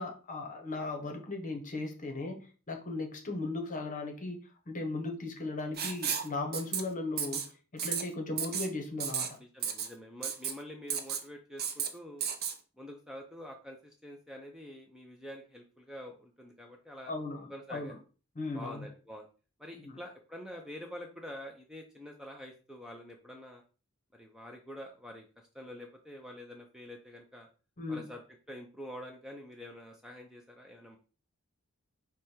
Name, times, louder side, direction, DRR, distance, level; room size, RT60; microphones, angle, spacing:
voice 1, 0.0-7.4 7.7-9.4 17.1-18.0 18.4-18.9 19.8-20.0 27.8-28.0, left 2 dB, 35° left, 4 dB, 0.9 m, -37 dB
Writing, 5.8-6.3 6.5-6.8 7.2-7.5 7.8-8.0 8.4-8.7 9.0-9.3 9.6-9.9 10.2-10.5 10.9-11.2 11.6-11.9 12.2-12.5, right 7 dB, 45° right, 0.6 m, -33 dB
voice 2, 9.4-12.2 12.8-17.1 17.5-18.0 18.5-19.3 19.6-23.6 24.1-25.3 25.5-27.5 27.9-28.2 28.5-31.0, equal, 5° right, 2 dB, 0.4 m, -46 dB
4.9 x 2.2 x 4.3 m, 0.35 s
head